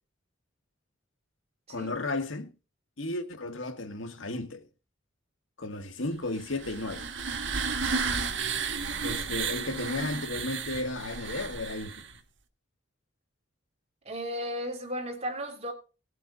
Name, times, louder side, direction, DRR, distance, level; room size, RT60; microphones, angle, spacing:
voice 1, 1.7-2.5 3.0-4.6 5.6-7.1 8.0-8.3 9.0-11.9, left 2 dB, 80° left, 1.9 m, -34 dB
sound 1, 6.3-12.2, right 5 dB, 65° right, 1.5 m, -33 dB
voice 2, 14.0-15.7, equal, 35° right, 3.3 m, -35 dB
19.5 x 7.7 x 4.0 m
head